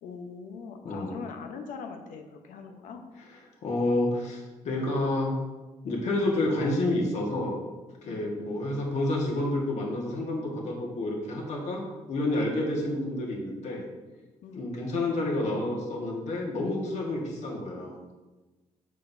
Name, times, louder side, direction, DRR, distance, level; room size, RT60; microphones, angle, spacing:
voice 1, 0.0-3.0 8.0-8.3 14.4-14.7, left 5 dB, 85° left, 5 dB, 0.9 m, -42 dB
voice 2, 0.8-1.2 3.6-5.3 5.8-7.6 8.0-11.8 12.1-13.8 14.5-18.0, left 1 dB, 60° left, -1 dB, 1.6 m, -29 dB
7.4 x 6.5 x 2.7 m, 1.2 s
cardioid pair, 140°, 13 cm